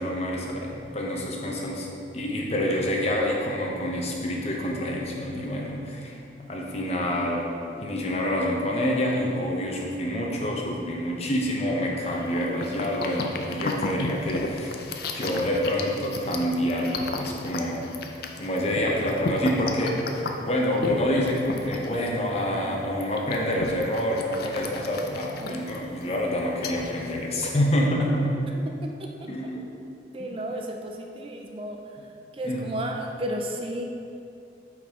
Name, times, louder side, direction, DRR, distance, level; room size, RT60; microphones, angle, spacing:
voice 1, 0.0-6.2 6.5-7.5 7.8-14.8 15.1-17.9 18.4-28.4 29.2-29.7 32.4-32.7, equal, 35° left, -1 dB, 0.9 m, -27 dB
sound 1, 12.0-27.9, left 2 dB, 55° left, 0.5 m, -34 dB
voice 2, 28.8-29.5 30.1-31.8 32.3-33.8, right 1 dB, 30° right, 2 dB, 0.4 m, -33 dB
8.4 x 4.8 x 3.6 m, 2.6 s
head